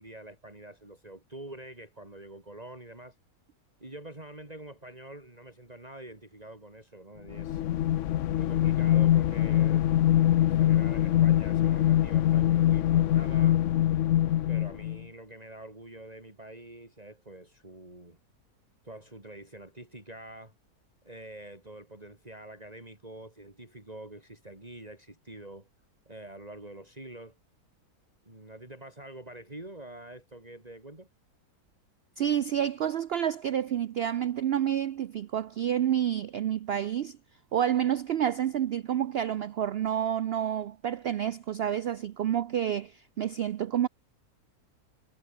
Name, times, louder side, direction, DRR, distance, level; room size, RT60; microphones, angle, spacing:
voice 1, 0.0-3.2 3.8-7.6 8.4-13.6 14.5-18.2 18.8-20.5 21.0-25.7 26.1-27.4 28.2-31.1, right 1 dB, 25° right, 4.3 m, -46 dB
sound 1, 7.3-15.0, left 12 dB, 65° left, 0.8 m, -23 dB
voice 2, 32.2-37.2 37.5-43.9, right 10 dB, 85° right, 0.5 m, -29 dB
omnidirectional pair, 1.7 m